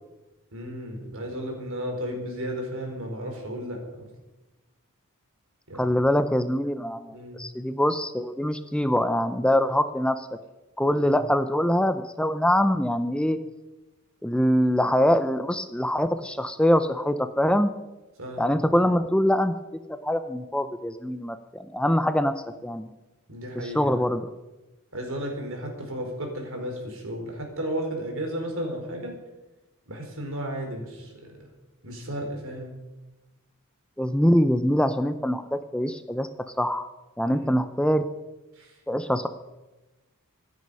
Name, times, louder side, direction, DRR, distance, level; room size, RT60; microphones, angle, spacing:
voice 1, 0.5-4.1 5.7-5.9 7.1-7.4 10.9-11.2 18.2-18.7 23.3-24.0 24.9-29.2 29.9-31.4 31.8-32.8 37.3-37.6 38.5-38.8, equal, 65° right, 3 dB, 4.4 m, -34 dB
voice 2, 5.8-10.3 10.8-13.4 14.2-17.7 18.4-19.5 19.9-22.3 22.6-22.9 23.6-24.2 34.0-36.3 36.6-36.9 37.2-38.1 38.9-39.3, equal, 5° left, 10 dB, 0.6 m, -24 dB
25.5 x 9.5 x 5.5 m, 1.1 s
head